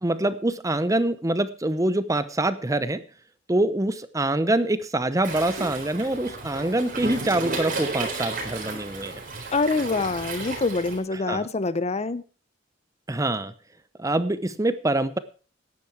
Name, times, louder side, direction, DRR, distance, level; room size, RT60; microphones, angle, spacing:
voice 1, 0.0-3.0 3.5-9.1 11.3-11.5 13.1-13.5 14.0-15.2, right 1 dB, 15° right, 14 dB, 0.8 m, -25 dB
Waves surf, 5.2-11.0, right 3 dB, 45° right, 4.2 m, -33 dB
voice 2, 9.5-12.2, left 3 dB, 35° left, 16 dB, 0.7 m, -25 dB
14.5 x 10.5 x 4.6 m, 0.37 s
head